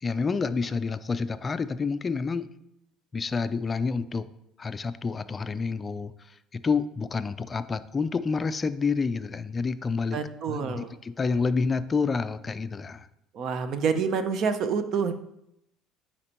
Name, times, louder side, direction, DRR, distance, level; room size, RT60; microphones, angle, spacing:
voice 1, 0.0-2.5 3.1-4.2 4.6-6.1 6.5-10.2 10.5-13.1, left 4 dB, 25° left, 12 dB, 0.3 m, -28 dB
voice 2, 10.1-10.9 13.3-15.1, right 6 dB, 50° right, 10 dB, 0.6 m, -27 dB
9.4 x 4.4 x 2.9 m, 0.80 s
cardioid pair, 130°, 0 cm